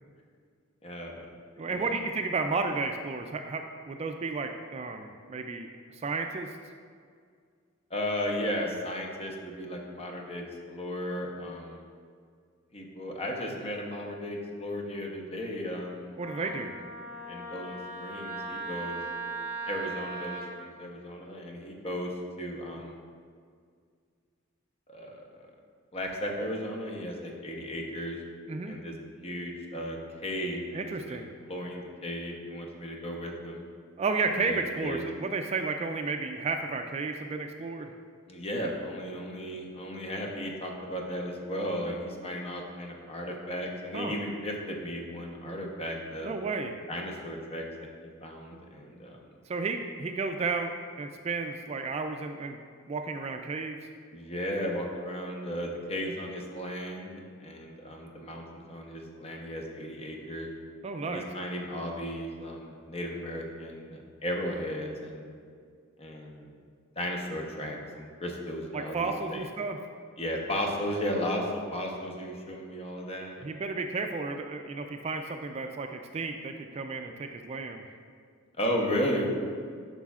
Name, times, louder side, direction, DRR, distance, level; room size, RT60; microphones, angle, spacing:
voice 1, 0.8-1.3 1.6-1.9 7.9-11.9 12.7-16.8 17.3-19.1 19.7-22.1 22.4-23.0 24.9-25.5 25.9-28.2 28.7-28.9 29.2-31.2 31.5-33.6 34.3-35.1 38.3-46.3 46.9-47.7 48.0-49.3 54.1-57.1 57.4-60.5 61.0-65.3 66.0-66.5 67.0-69.4 70.2-73.5 78.6-79.3, equal, 30° left, 0 dB, 0.9 m, -35 dB
voice 2, 1.6-5.7 5.9-6.5 16.2-16.7 28.5-28.8 30.7-31.3 34.0-37.9 43.9-44.2 46.2-46.7 49.5-52.6 52.9-53.8 60.8-61.3 68.7-69.8 73.4-77.9, right 4 dB, 30° right, 5 dB, 0.3 m, -32 dB
Wind instrument woodwind instrument, 16.2-20.5, right 3 dB, 90° left, 1.1 m, -38 dB
11.0 x 5.7 x 2.4 m, 2.1 s
head